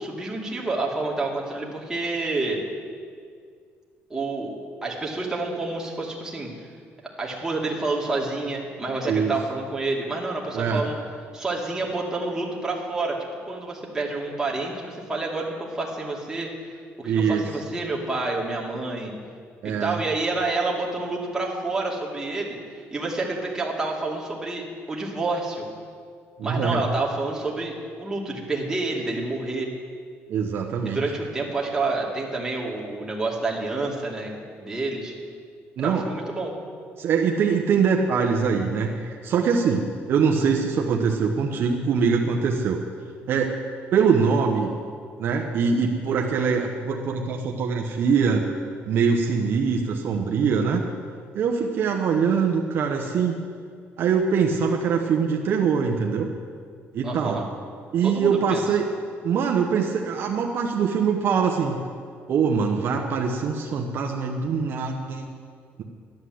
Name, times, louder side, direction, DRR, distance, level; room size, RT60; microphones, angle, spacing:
voice 1, 0.0-2.6 4.1-4.5 4.8-6.5 7.2-11.0 11.3-13.2 13.5-16.5 17.0-19.1 19.6-25.7 26.4-29.7 30.8-34.3 34.6-35.1 35.8-36.5 57.0-57.5 58.0-58.6, right 3 dB, 10° right, -2 dB, 2.4 m, -28 dB
voice 2, 17.0-17.4 19.6-20.0 26.4-26.8 30.3-31.0 35.8-36.0 37.0-42.8 43.3-43.5 43.9-44.7 45.2-48.4 48.9-50.8 51.3-53.4 54.0-56.3 56.9-57.4 57.9-58.8 59.2-61.8 62.3-65.3, right 6 dB, 55° right, 1 dB, 1.1 m, -23 dB
13.0 x 10.5 x 7.9 m, 2.1 s
cardioid pair, 145°, 5 cm